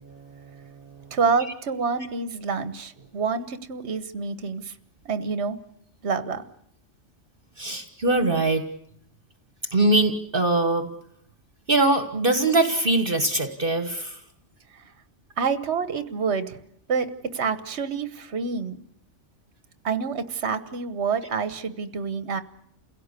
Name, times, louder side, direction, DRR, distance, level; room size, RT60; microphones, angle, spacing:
voice 1, 0.0-1.1 7.6-8.6 9.7-10.9 11.7-14.2, right 2 dB, 45° right, 7 dB, 1.7 m, -23 dB
voice 2, 1.1-4.7 5.0-5.6 6.0-6.4 14.7-14.9 15.4-16.6 16.9-18.8 19.8-22.4, right 5 dB, 60° right, 11 dB, 1.5 m, -27 dB
29.0 x 17.0 x 8.3 m, 0.72 s
omnidirectional pair, 1.3 m